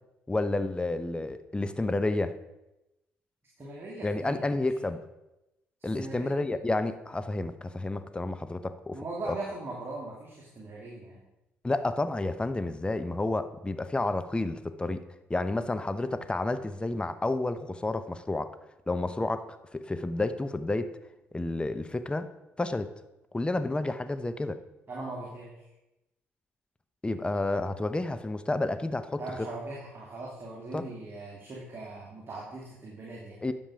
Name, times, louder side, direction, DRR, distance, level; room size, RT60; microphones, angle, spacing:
voice 1, 0.3-2.3 4.0-5.0 5.8-9.3 11.6-15.0 15.3-18.5 18.9-19.5 19.7-20.9 21.3-22.3 22.6-22.9 23.3-24.6 27.0-29.5 30.7-30.8 33.4-33.5, left 2 dB, 15° left, 10 dB, 0.7 m, -30 dB
voice 2, 3.6-4.5 5.9-6.4 8.9-11.2 24.9-25.7 29.2-33.4, right 2 dB, 35° right, -4 dB, 2.6 m, -40 dB
10.0 x 7.2 x 5.0 m, 0.96 s
hypercardioid pair, 50°, 6 cm